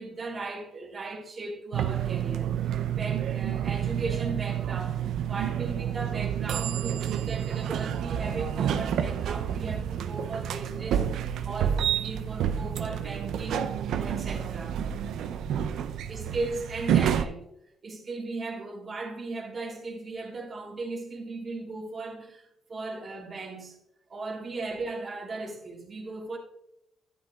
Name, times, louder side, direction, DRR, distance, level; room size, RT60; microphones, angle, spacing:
voice 1, 0.0-11.1 11.4-14.8 15.8-17.5 17.8-22.4 22.7-23.8 24.1-26.4, right 3 dB, 40° right, 1.7 m, -37 dB
sound 1, 1.7-17.2, right 9 dB, 75° right, 0.5 m, -29 dB
10.0 x 9.2 x 2.3 m
cardioid pair, 90°, 0 cm